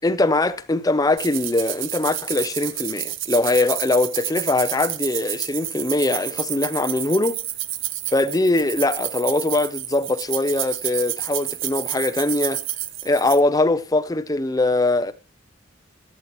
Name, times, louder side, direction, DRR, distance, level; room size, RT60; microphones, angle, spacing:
voice 1, 0.0-7.4 8.1-12.6 13.0-15.1, left 2 dB, 20° left, 0.5 m, -22 dB
sound 1, 1.2-13.4, right 13 dB, 85° right, 0.6 m, -30 dB
16.5 x 10.5 x 2.9 m
head